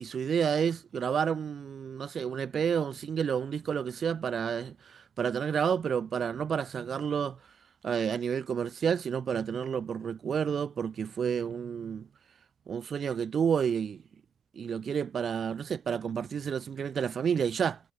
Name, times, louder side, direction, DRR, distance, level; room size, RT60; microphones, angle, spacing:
voice 1, 0.0-7.4 7.8-12.1 12.7-14.0 14.5-17.8, right 7 dB, 50° right, 1.2 m, -30 dB
cardioid pair, 90°, 0 cm